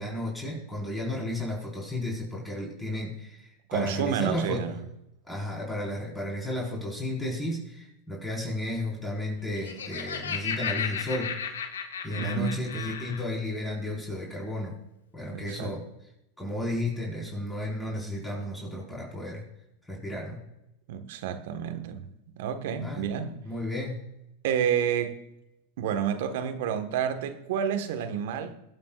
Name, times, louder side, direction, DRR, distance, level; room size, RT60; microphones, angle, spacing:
voice 1, 0.0-4.7 5.3-11.4 12.0-14.8 15.1-15.8 16.4-19.4 19.9-20.4 22.8-23.1 23.4-24.1, left 1 dB, 5° left, 4.8 m, -33 dB
voice 2, 3.7-4.8 12.1-12.7 15.3-15.8 20.9-22.0 22.4-23.4 24.4-25.2 25.8-28.5, right 8 dB, 65° right, 1.5 m, -29 dB
Laughter, 9.4-13.3, left 7 dB, 80° left, 1.4 m, -34 dB
23.0 x 8.8 x 2.5 m
hypercardioid pair, 100°, 0 cm